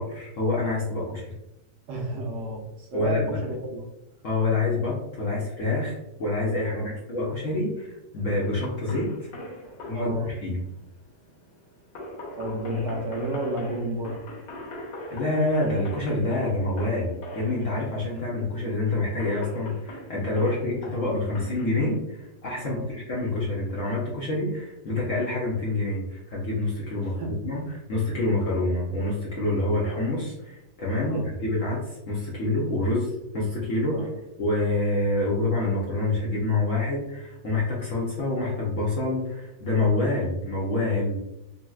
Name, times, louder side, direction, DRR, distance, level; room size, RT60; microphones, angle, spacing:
voice 1, 0.0-1.3 2.9-3.4 4.2-7.9 8.1-9.3 9.9-10.6 15.1-27.2 27.4-34.1 34.4-41.2, left 2 dB, 65° left, -5 dB, 0.8 m, -27 dB
voice 2, 1.9-3.9 6.7-6.9 9.6-10.3 12.3-14.2 20.7-20.8 22.6-22.9 27.0-27.4 31.0-31.3 33.9-34.1, right 1 dB, 80° right, 1 dB, 1.3 m, -32 dB
sound 1, 8.4-22.0, left 1 dB, 80° left, 1.5 m, -41 dB
3.9 x 2.0 x 2.3 m, 0.90 s
omnidirectional pair, 1.9 m